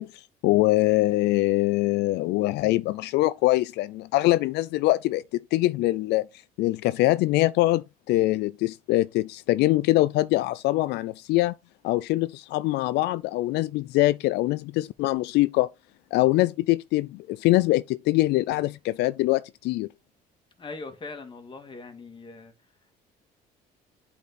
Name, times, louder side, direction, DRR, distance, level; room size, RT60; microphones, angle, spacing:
voice 1, 0.0-6.3 6.6-11.5 11.8-15.7 16.1-19.9, left 17 dB, 80° left, 0.4 m, -23 dB
voice 2, 20.6-22.5, left 3 dB, 30° left, 2.0 m, -40 dB
8.3 x 4.2 x 4.1 m
cardioid pair, 110°, 17 cm